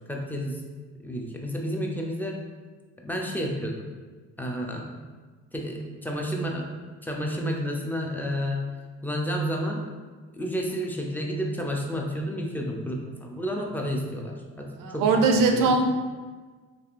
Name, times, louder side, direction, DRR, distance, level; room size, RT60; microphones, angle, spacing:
voice 1, 0.1-0.6 1.0-2.4 3.0-3.8 4.4-4.9 5.5-6.7 7.0-8.6 9.0-9.8 10.3-15.7, equal, 5° left, 0 dB, 0.4 m, -30 dB
voice 2, 14.8-15.8, right 4 dB, 80° right, 3 dB, 0.5 m, -21 dB
3.4 x 2.5 x 2.4 m, 1.4 s
cardioid pair, 75°, 32 cm